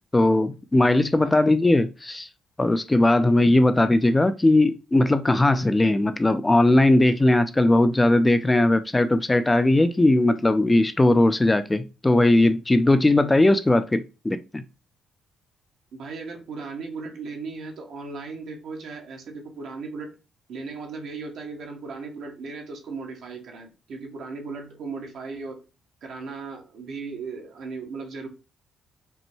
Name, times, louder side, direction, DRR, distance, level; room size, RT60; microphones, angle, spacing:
voice 1, 0.1-2.3 2.6-14.6, left 2 dB, 15° left, 0.4 m, -19 dB
voice 2, 15.9-20.1 20.5-25.6 26.0-28.3, right 4 dB, 70° right, 1.2 m, -36 dB
5.2 x 2.2 x 3.0 m
cardioid pair, 90°, 0 cm